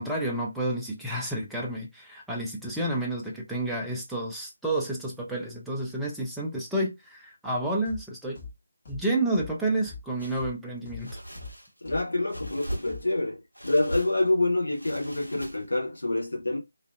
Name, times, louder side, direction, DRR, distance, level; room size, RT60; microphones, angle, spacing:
voice 1, 0.0-8.4 8.9-11.2, right 1 dB, ahead, 0.4 m, -30 dB
sound 1, 7.8-8.0 8.3-8.5 8.8-9.0 9.3-9.5 9.8-10.0 10.3-10.5 10.8-11.0 11.3-11.5 11.8-12.0 12.3-12.5 12.8-13.0, left 5 dB, 35° left, 1.0 m, -41 dB
sound 2, 10.2-10.4 11.0-11.8 12.3-13.2 13.5-14.3 14.7-15.9, right 1 dB, 90° left, 1.2 m, -39 dB
voice 2, 11.8-16.6, left 2 dB, 60° left, 1.1 m, -27 dB
2.4 x 2.4 x 2.4 m
figure-of-eight pair, 155°, 0 cm